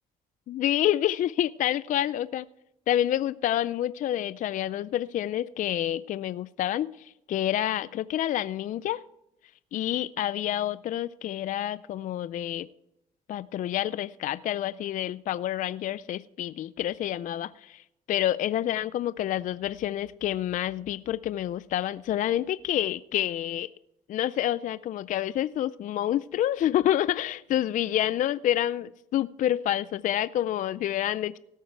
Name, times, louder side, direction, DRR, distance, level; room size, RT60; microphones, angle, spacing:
voice 1, 0.5-2.4 2.9-9.0 9.7-12.7 13.3-23.7 24.1-31.4, left 12 dB, 50° left, 16 dB, 0.4 m, -28 dB
17.5 x 9.0 x 4.6 m, 0.82 s
cardioid pair, 110°, 17 cm